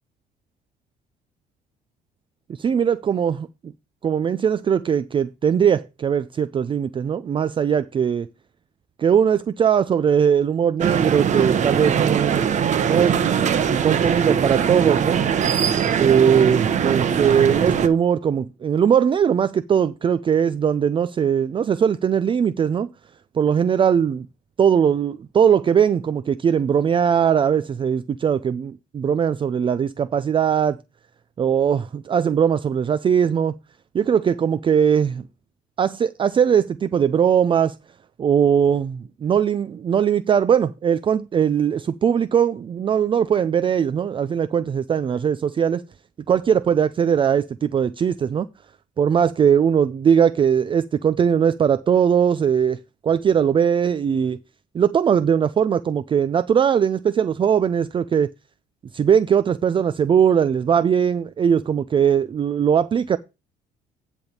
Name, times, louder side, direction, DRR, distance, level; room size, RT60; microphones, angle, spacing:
voice 1, 2.5-3.7 4.0-8.3 9.0-12.3 12.7-13.4 13.7-15.2 16.0-22.9 23.3-24.3 24.6-30.8 31.4-33.6 33.9-35.2 35.8-37.8 38.2-45.8 46.3-48.5 49.0-54.4 54.7-58.3 58.9-63.2, right 8 dB, 30° right, 0.4 m, -20 dB
sound 1, 10.8-17.9, right 7 dB, 45° right, 1.1 m, -21 dB
10.5 x 3.5 x 7.1 m
cardioid pair, 110°, 17 cm